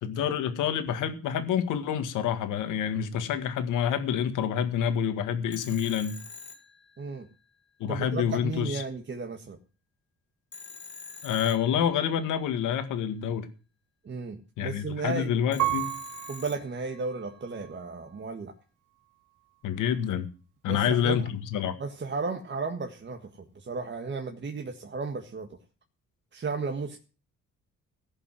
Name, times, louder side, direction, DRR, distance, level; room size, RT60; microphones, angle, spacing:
voice 1, 0.0-6.2 7.8-8.8 11.2-13.5 14.6-15.9 19.6-20.3 20.6-21.7, left 8 dB, 90° left, 1.8 m, -28 dB
Telephone, 5.5-7.4 10.5-12.3 15.5-17.2, left 4 dB, 35° left, 2.6 m, -46 dB
voice 2, 7.9-9.6 14.0-15.3 16.3-18.5 20.7-21.3 21.8-25.5 26.3-27.0, right 4 dB, 40° right, 1.7 m, -34 dB
Piano, 15.6-18.3 19.0-19.7, right 15 dB, 90° right, 2.4 m, -35 dB
16.0 x 5.7 x 7.5 m
cardioid pair, 90°, 30 cm